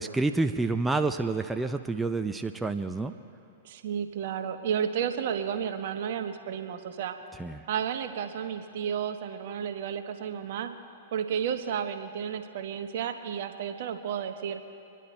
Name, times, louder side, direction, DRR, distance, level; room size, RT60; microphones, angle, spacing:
voice 1, 0.0-3.1 7.3-7.6, right 3 dB, 10° right, 7 dB, 0.5 m, -28 dB
voice 2, 3.6-7.2 7.7-10.7 11.1-14.6, right 8 dB, 65° right, 7 dB, 1.1 m, -32 dB
25.5 x 10.5 x 4.4 m, 2.6 s
hypercardioid pair, 110°, 0 cm